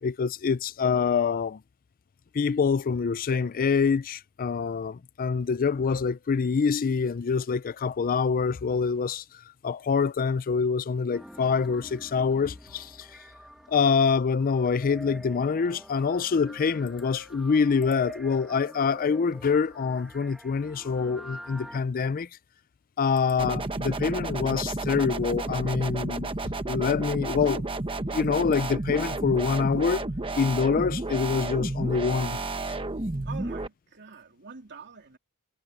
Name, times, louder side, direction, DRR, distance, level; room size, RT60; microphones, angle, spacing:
voice 1, 0.0-1.6 2.3-9.2 9.6-13.2 13.7-22.3 23.0-26.3 26.7-27.6 28.0-30.1 30.4-32.4 32.7-32.8, left 5 dB, 40° left, 0.4 m, -25 dB
sound 1, 11.1-21.8, equal, ahead, 1.3 m, -46 dB
sound 2, 23.4-33.7, right 2 dB, 25° right, 1.0 m, -31 dB
voice 2, 33.2-35.2, right 5 dB, 50° right, 3.4 m, -45 dB
head